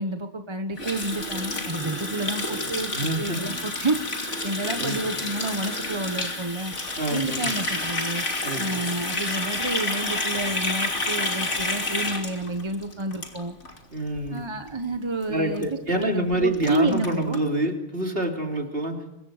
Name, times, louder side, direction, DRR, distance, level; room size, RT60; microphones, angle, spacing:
voice 1, 0.0-4.0 4.4-6.7 7.1-8.2 8.6-13.6 14.3-17.4, right 2 dB, 25° right, 6 dB, 1.2 m, -29 dB
Water tap faucet, 0.8-13.8 14.1-14.3 14.6-15.0 15.2-15.3 15.5-15.6 16.0-16.1 16.3-17.4, left 2 dB, 75° left, 3.3 m, -29 dB
voice 2, 2.9-3.5 4.8-5.0 7.0-7.5 8.4-8.7 13.9-14.4 15.3-19.0, right 1 dB, 50° right, 2 dB, 3.6 m, -27 dB
25.5 x 22.5 x 5.0 m, 0.95 s
omnidirectional pair, 1.2 m